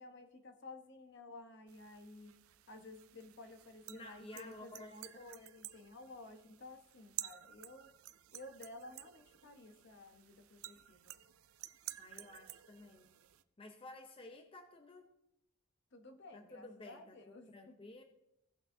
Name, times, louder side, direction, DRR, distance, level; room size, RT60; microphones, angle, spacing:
voice 1, 0.0-2.3 2.7-7.9 8.3-11.1 15.9-17.8, left 2 dB, 55° left, 6 dB, 0.9 m, -54 dB
sound 1, 1.7-13.4, right 14 dB, 80° right, 0.4 m, -52 dB
voice 2, 3.9-5.3 12.0-13.1 13.6-15.1 16.3-18.0, left 2 dB, 25° left, 5 dB, 0.6 m, -53 dB
17.0 x 5.9 x 2.7 m, 0.82 s
head